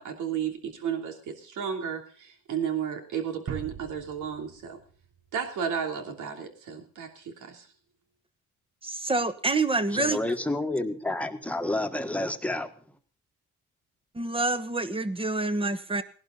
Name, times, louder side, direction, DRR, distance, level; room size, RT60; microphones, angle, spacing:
voice 1, 0.0-4.8 5.3-7.7, right 8 dB, 85° right, 3 dB, 3.1 m, -33 dB
sound 1, 3.5-6.1, right 7 dB, 50° right, 1.2 m, -42 dB
voice 2, 8.8-10.2 14.1-16.0, right 2 dB, 20° right, 11 dB, 1.3 m, -27 dB
voice 3, 9.9-12.7, left 1 dB, 5° left, 6 dB, 1.6 m, -29 dB
18.0 x 11.5 x 4.0 m, 0.41 s
cardioid pair, 90°, 30 cm